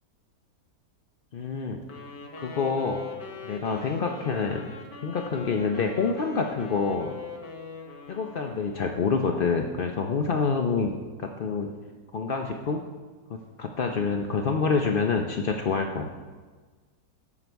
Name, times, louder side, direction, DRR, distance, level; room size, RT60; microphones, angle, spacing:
voice 1, 1.3-1.8 2.4-3.0 3.4-4.7 5.0-7.1 8.1-11.7 12.1-12.8 13.3-16.1, left 5 dB, 60° left, 3 dB, 0.5 m, -27 dB
Wind instrument woodwind instrument, 1.8-9.1, left 3 dB, 75° left, 2.0 m, -42 dB
13.0 x 8.5 x 4.6 m, 1.4 s
omnidirectional pair, 1.8 m